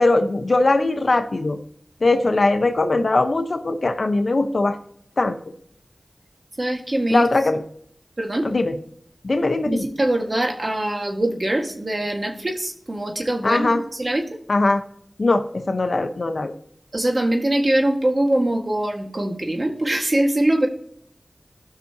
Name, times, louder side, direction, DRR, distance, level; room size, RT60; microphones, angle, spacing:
voice 1, 0.0-1.6 2.0-4.8 5.2-5.4 7.1-7.6 8.4-8.7 9.2-9.8 13.4-13.8 14.5-14.8 15.2-16.5, left 2 dB, 65° left, 7 dB, 1.0 m, -20 dB
voice 2, 6.6-7.3 8.2-8.5 9.7-14.2 16.9-20.7, right 1 dB, 45° right, 3 dB, 1.7 m, -22 dB
16.0 x 6.0 x 2.8 m, 0.66 s
cardioid pair, 40°, 0 cm